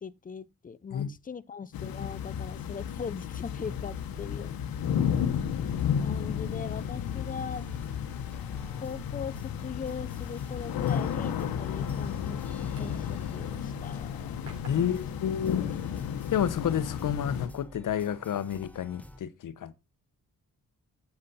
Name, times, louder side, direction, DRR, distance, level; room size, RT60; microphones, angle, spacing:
voice 1, 0.0-4.5 6.0-7.7 8.8-12.5 12.8-14.4 14.7-15.0 15.5-15.7, left 6 dB, 25° left, 0.5 m, -40 dB
sound 1, 1.7-17.5, left 8 dB, 85° left, 1.0 m, -33 dB
sound 2, 5.5-19.2, left 1 dB, 5° left, 1.2 m, -52 dB
sound 3, 8.6-14.7, right 3 dB, 45° right, 5.1 m, -57 dB
voice 2, 14.7-15.7 16.3-19.7, left 9 dB, 65° left, 0.8 m, -30 dB
7.6 x 7.0 x 4.1 m
cardioid pair, 80°, 34 cm